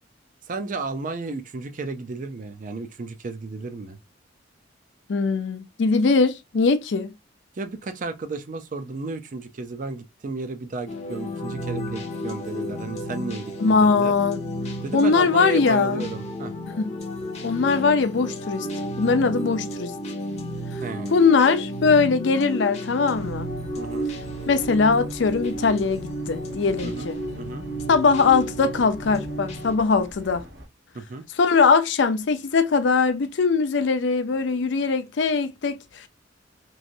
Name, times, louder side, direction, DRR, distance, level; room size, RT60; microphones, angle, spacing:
voice 1, 0.5-4.0 7.6-14.2 14.8-16.5 20.8-21.2 23.8-24.1 26.8-27.1 27.4-27.6 30.9-31.2, right 3 dB, 40° right, 0.4 m, -33 dB
voice 2, 5.1-7.1 13.6-14.4 14.9-16.0 16.8-16.9 17.4-18.7 19.0-19.9 21.1-23.5 24.5-27.2 27.9-30.4 31.4-36.1, left 4 dB, 65° left, 0.4 m, -21 dB
sound 1, 10.9-29.8, equal, 35° left, 0.7 m, -32 dB
sound 2, 23.1-30.7, equal, 60° right, 1.0 m, -44 dB
3.1 x 2.6 x 2.5 m
head